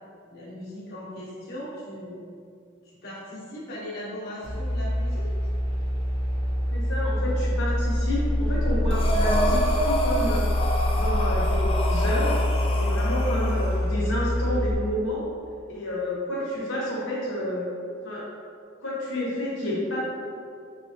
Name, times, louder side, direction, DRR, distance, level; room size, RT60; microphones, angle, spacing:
voice 1, 0.3-2.2 2.8-5.5, equal, 50° left, -8 dB, 1.2 m, -38 dB
sound 1, 4.4-14.7, left 1 dB, 25° right, 1.0 m, -25 dB
voice 2, 6.7-10.5 10.9-12.4 12.7-15.2 15.7-17.6 18.0-18.2 18.8-20.0, left 1 dB, 75° left, -7 dB, 1.1 m, -30 dB
Breathing, 8.9-13.8, equal, 25° left, 0.3 m, -29 dB
5.6 x 3.2 x 2.7 m, 2.3 s
head